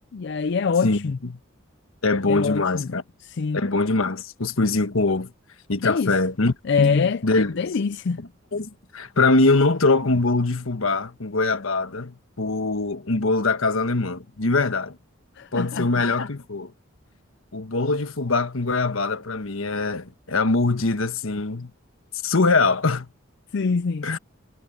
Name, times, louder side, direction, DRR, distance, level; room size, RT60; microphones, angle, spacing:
voice 1, 0.1-1.2 2.3-2.9 3.2-3.6 5.8-6.1 6.6-7.2 7.6-8.3 15.4-15.9 23.5-24.1, left 5 dB, 60° left, 0.4 m, -24 dB
voice 2, 0.8-1.4 2.0-3.0 3.5-5.3 5.7-7.6 8.5-15.0 15.5-16.7 17.5-21.7 22.2-23.1 24.0-24.2, left 3 dB, 90° left, 1.3 m, -23 dB
head